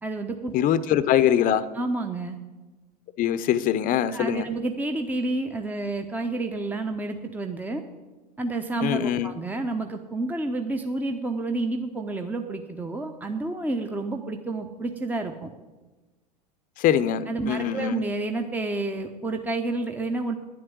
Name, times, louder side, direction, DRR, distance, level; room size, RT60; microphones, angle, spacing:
voice 1, 0.0-0.5 1.7-2.4 4.1-7.8 8.4-15.5 17.3-20.4, right 2 dB, 10° right, 5 dB, 0.8 m, -29 dB
voice 2, 0.5-1.7 3.2-4.5 8.8-9.3 16.8-18.0, left 10 dB, 40° left, 15 dB, 0.7 m, -23 dB
10.0 x 7.8 x 9.3 m, 1.2 s
hypercardioid pair, 80°, 21 cm